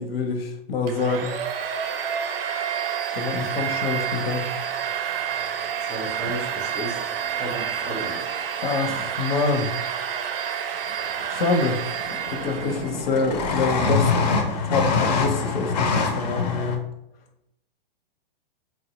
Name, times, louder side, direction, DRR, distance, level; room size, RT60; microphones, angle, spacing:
voice 1, 0.0-1.4 3.1-4.6 8.6-9.7 11.3-11.9 12.3-16.8, left 4 dB, 80° left, 5 dB, 0.7 m, -26 dB
Domestic sounds home sounds, 0.9-13.0, right 8 dB, 80° right, 0.5 m, -29 dB
voice 2, 3.3-3.7 5.9-7.0 7.3-8.2, right 1 dB, 10° right, -3 dB, 0.4 m, -34 dB
sound 1, 6.2-6.3 7.9-8.6 10.9-11.0 11.2-11.7 12.0-16.8, left 4 dB, 45° left, 0.4 m, -25 dB
3.3 x 2.0 x 2.9 m, 0.82 s
hypercardioid pair, 165°, 29 cm